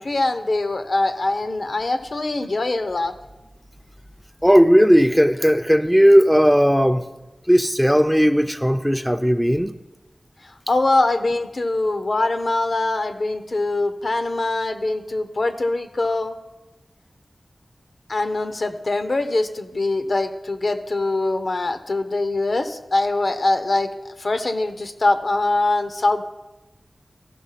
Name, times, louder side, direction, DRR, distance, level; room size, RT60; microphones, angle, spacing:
voice 1, 0.0-3.1 10.4-16.4 18.1-26.2, left 2 dB, 65° left, 0.8 m, -23 dB
voice 2, 4.4-7.1 7.5-9.7, equal, ahead, 0.5 m, -16 dB
13.5 x 6.0 x 5.7 m
wide cardioid pair, 65°, 0 cm